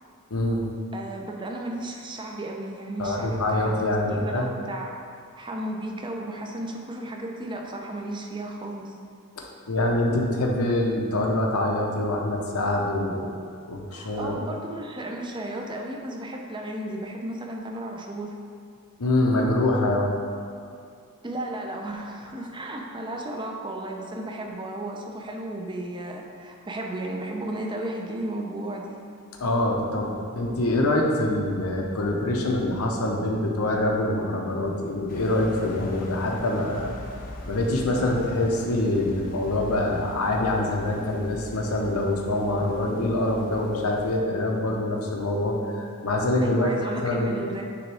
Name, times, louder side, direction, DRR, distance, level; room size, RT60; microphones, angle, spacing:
voice 1, 0.3-0.7 3.0-4.5 9.4-13.3 13.7-14.4 19.0-20.1 29.4-36.9 37.5-46.7 47.0-47.3, left 1 dB, 75° left, 0 dB, 0.9 m, -25 dB
voice 2, 0.9-4.9 5.4-8.9 13.9-18.4 21.2-29.0 46.4-47.6, right 1 dB, 20° right, 1 dB, 0.6 m, -34 dB
sound 1, 35.1-44.2, left 1 dB, 40° left, 0.6 m, -41 dB
9.7 x 3.6 x 3.4 m, 2.3 s
head